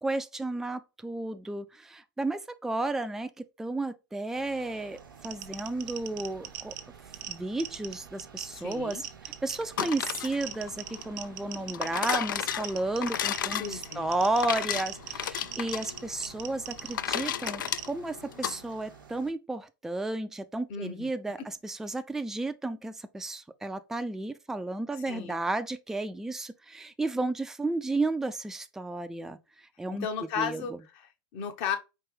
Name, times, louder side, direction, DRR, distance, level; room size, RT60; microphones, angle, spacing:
voice 1, 0.0-6.7 7.3-9.1 9.4-29.4 29.8-30.1 30.4-30.6, right 2 dB, 5° right, 0.4 m, -33 dB
sound 1, 4.3-19.3, right 6 dB, 85° right, 0.9 m, -52 dB
sound 2, 5.0-17.9, right 12 dB, 50° right, 0.6 m, -43 dB
voice 2, 8.5-9.0 13.6-14.1 20.7-21.1 25.1-25.4 29.9-31.8, left 7 dB, 50° left, 1.0 m, -35 dB
sound 3, 9.6-18.6, left 10 dB, 75° left, 0.4 m, -34 dB
4.6 x 3.0 x 3.0 m
hypercardioid pair, 95°, 11 cm